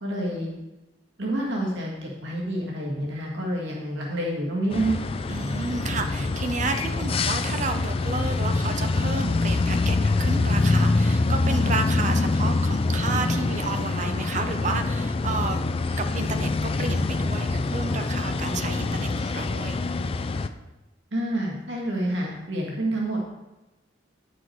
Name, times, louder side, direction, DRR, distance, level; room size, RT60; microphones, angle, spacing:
voice 1, 0.0-0.5 1.2-5.0 21.1-23.3, right 1 dB, 85° right, -3 dB, 2.0 m, -28 dB
sound 1, 4.7-20.5, left 3 dB, 30° left, 0.4 m, -25 dB
voice 2, 5.3-15.6 16.0-19.8, right 4 dB, 40° right, 7 dB, 0.7 m, -31 dB
9.3 x 6.2 x 4.6 m, 1.0 s
head